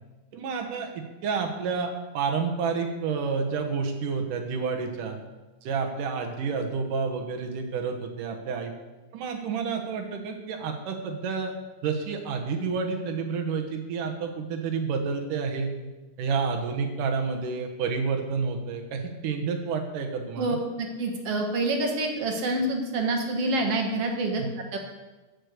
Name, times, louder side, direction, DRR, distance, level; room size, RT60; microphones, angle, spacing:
voice 1, 0.3-5.2 5.6-8.7 9.1-11.5 11.8-15.7 16.2-20.6 24.4-24.5, right 5 dB, 90° right, 4 dB, 2.9 m, -29 dB
voice 2, 20.4-24.4 24.7-24.8, right 2 dB, 55° right, 2 dB, 2.5 m, -27 dB
14.5 x 6.6 x 6.6 m, 1.2 s
omnidirectional pair, 3.6 m